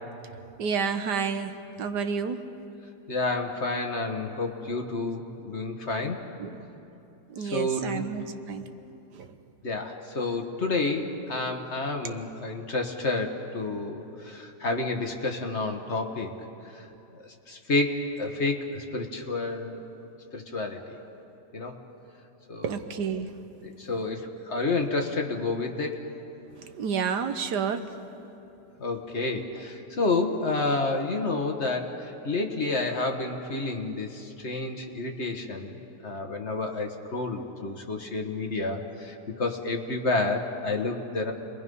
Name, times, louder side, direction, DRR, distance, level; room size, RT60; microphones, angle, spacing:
voice 1, 0.6-2.5 6.4-6.6 7.3-8.7 9.1-9.4 12.0-12.2 22.6-23.3 26.5-28.0, right 6 dB, 75° right, 8 dB, 1.5 m, -30 dB
voice 2, 3.1-6.2 7.4-8.1 9.6-16.3 16.6-16.9 17.1-19.8 20.3-21.0 21.5-21.8 22.5-22.6 23.6-26.0 28.8-35.7 36.0-41.3, left 3 dB, 45° left, 3 dB, 1.5 m, -30 dB
29.5 x 22.0 x 5.4 m, 2.9 s
omnidirectional pair, 1.8 m